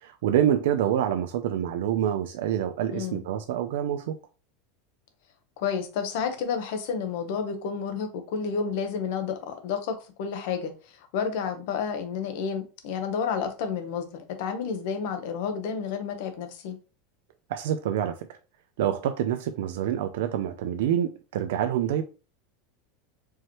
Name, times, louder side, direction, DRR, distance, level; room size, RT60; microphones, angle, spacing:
voice 1, 0.0-4.2 17.5-18.4 18.8-22.0, right 10 dB, 70° right, 0.4 m, -27 dB
voice 2, 5.6-16.8, left 6 dB, 55° left, 0.9 m, -30 dB
4.7 x 3.0 x 3.0 m
supercardioid pair, 175°, 0 cm